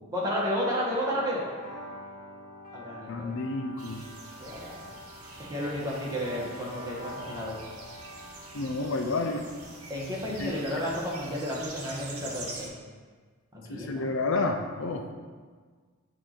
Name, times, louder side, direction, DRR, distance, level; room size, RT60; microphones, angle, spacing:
voice 1, 0.1-1.4 2.7-3.4 4.4-4.8 5.4-7.5 9.9-12.7 13.5-14.1, equal, 15° right, -5 dB, 1.3 m, -32 dB
sound 1, 0.8-10.4, equal, 40° left, 1.3 m, -46 dB
voice 2, 3.1-4.0 8.5-9.4 10.4-10.6 13.7-15.1, left 3 dB, 60° left, 4 dB, 0.5 m, -30 dB
sound 2, 3.8-12.7, right 2 dB, 75° right, 1.0 m, -45 dB
7.6 x 2.7 x 5.8 m, 1.5 s
head